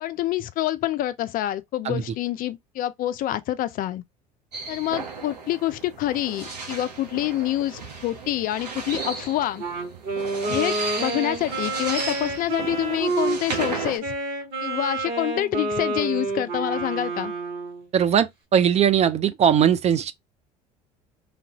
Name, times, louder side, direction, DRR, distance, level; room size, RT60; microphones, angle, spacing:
voice 1, 0.0-4.0 4.7-9.6 10.5-14.1 14.6-17.3, left 13 dB, 45° left, 0.4 m, -27 dB
sound 1, 4.5-14.0, right 4 dB, 80° right, 0.9 m, -35 dB
Wind instrument woodwind instrument, 9.6-17.9, right 3 dB, 50° right, 2.0 m, -29 dB
voice 2, 17.9-20.1, right 9 dB, 30° right, 0.4 m, -20 dB
3.1 x 2.5 x 2.8 m
figure-of-eight pair, 65°, 21 cm